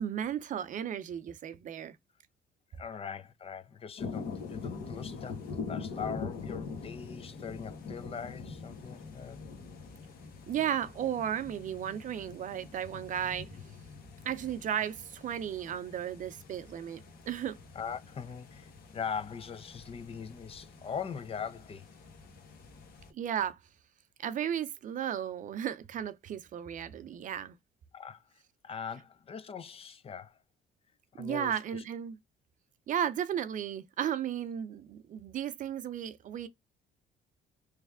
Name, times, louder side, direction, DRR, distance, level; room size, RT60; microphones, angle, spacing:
voice 1, 0.0-2.0 10.5-13.5 14.2-17.6 23.1-23.6 24.2-27.5 31.2-32.2 32.9-36.5, right 9 dB, 50° right, 0.6 m, -34 dB
voice 2, 2.7-9.4 17.7-21.9 27.9-28.2 28.6-30.4 31.1-31.8, left 7 dB, 35° left, 0.5 m, -41 dB
sound 1, 4.0-23.1, left 4 dB, 65° left, 1.3 m, -44 dB
3.4 x 3.2 x 3.5 m
cardioid pair, 110°, 17 cm